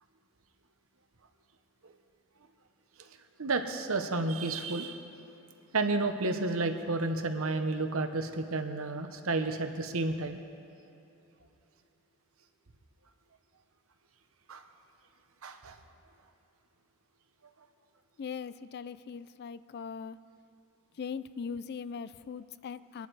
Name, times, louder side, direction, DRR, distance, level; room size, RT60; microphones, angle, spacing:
voice 1, 3.4-5.0 5.7-10.4 14.5-14.6 15.4-15.8, right 3 dB, 65° right, 7 dB, 1.0 m, -31 dB
voice 2, 18.2-20.2 21.0-23.1, left 6 dB, 50° left, 15 dB, 0.4 m, -40 dB
23.5 x 10.5 x 4.8 m, 2.7 s
head